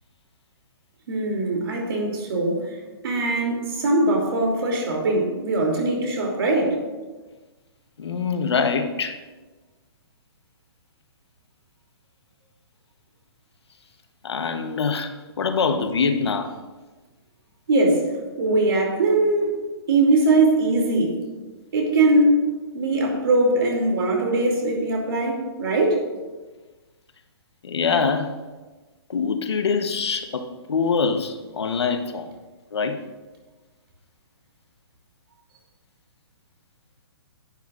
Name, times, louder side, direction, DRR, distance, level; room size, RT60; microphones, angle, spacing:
voice 1, 1.1-2.6 3.0-6.8 17.7-18.1 18.4-19.5 19.9-21.2 21.7-22.4 22.7-26.0, right 2 dB, 65° right, 0 dB, 2.8 m, -21 dB
voice 2, 8.0-9.2 14.2-16.6 27.6-28.4 29.1-32.3 32.7-33.0, left 5 dB, 85° left, 7 dB, 1.0 m, -24 dB
10.5 x 10.0 x 2.5 m, 1.2 s
hypercardioid pair, 160°, 14 cm